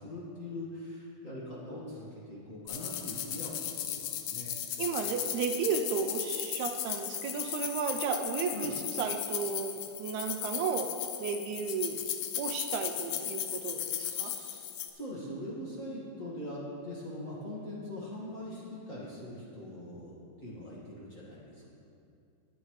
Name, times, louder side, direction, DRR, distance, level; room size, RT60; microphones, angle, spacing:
voice 1, 0.0-4.6 8.5-8.7 14.0-21.7, left 1 dB, 30° left, -6 dB, 1.7 m, -42 dB
sound 1, 2.7-14.9, left 11 dB, 90° left, 2.1 m, -36 dB
voice 2, 4.8-12.0 12.4-14.3, right 6 dB, 85° right, 3 dB, 2.0 m, -34 dB
19.5 x 8.3 x 3.2 m, 2.6 s
omnidirectional pair, 3.3 m